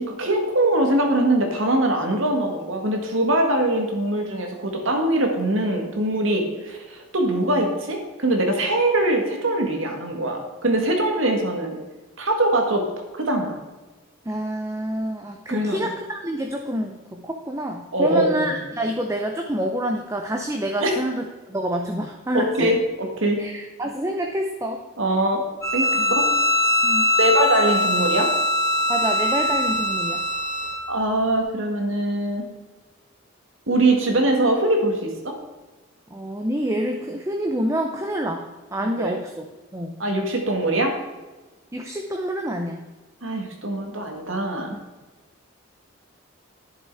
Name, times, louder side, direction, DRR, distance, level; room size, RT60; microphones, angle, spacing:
voice 1, 0.0-11.8 12.2-12.8 13.1-13.5 15.5-15.9 17.9-18.5 20.8-20.9 22.3-23.4 25.0-25.4 25.7-26.3 27.2-28.3 30.9-32.4 33.7-35.3 38.8-39.2 40.0-40.9 43.2-44.7, right 1 dB, 75° right, 3 dB, 1.8 m, -22 dB
voice 2, 14.3-22.7 23.4-24.8 26.0-26.2 26.8-27.1 28.9-30.3 36.1-39.5 39.7-40.0 41.7-42.8 44.7-44.8, equal, 15° right, 3 dB, 0.6 m, -27 dB
Bowed string instrument, 25.6-30.8, left 1 dB, 15° left, 1.3 m, -22 dB
11.0 x 6.8 x 4.7 m, 1.2 s
head